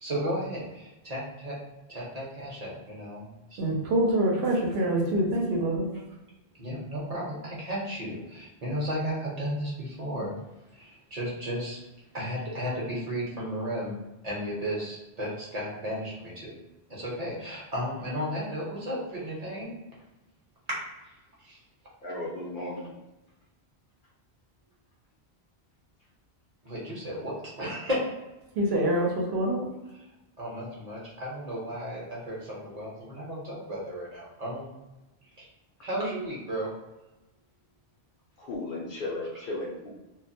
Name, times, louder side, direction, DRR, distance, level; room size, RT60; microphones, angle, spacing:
voice 1, 0.0-1.6 1.9-3.6 6.6-10.4 10.7-11.8 12.1-14.0 14.2-16.5 16.9-19.8 21.4-21.6 26.6-28.0 30.4-34.8 35.4-35.5 35.8-36.7, equal, 45° right, -5 dB, 0.7 m, -34 dB
voice 2, 3.6-5.9 28.5-29.7, right 1 dB, 75° right, 0 dB, 0.8 m, -25 dB
voice 3, 22.0-23.0 38.4-39.9, left 2 dB, 60° left, -3 dB, 0.6 m, -35 dB
2.3 x 2.1 x 2.6 m, 1.0 s
omnidirectional pair, 1.1 m